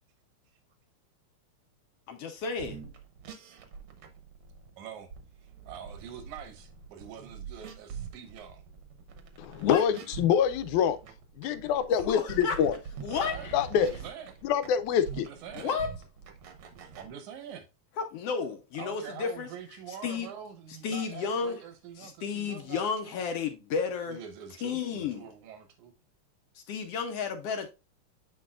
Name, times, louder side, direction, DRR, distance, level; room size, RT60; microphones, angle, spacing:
voice 1, 2.1-2.8 9.6-9.8 12.1-12.6 13.0-13.5 15.6-15.9 18.0-19.5 20.0-20.3 20.8-21.6 22.0-24.2 24.6-25.3 26.5-27.7, left 6 dB, 70° left, 1.5 m, -32 dB
sound 1, 2.5-17.1, right 6 dB, 65° right, 1.5 m, -45 dB
voice 2, 4.8-5.1 5.4-8.6 13.1-14.4 15.2-15.8 16.7-17.7 18.8-23.2 24.1-25.9, right 8 dB, 90° right, 2.4 m, -45 dB
voice 3, 9.4-11.0 11.4-12.8 13.5-13.9 14.4-15.3, left 8 dB, 85° left, 2.1 m, -25 dB
8.4 x 4.7 x 2.4 m
omnidirectional pair, 3.3 m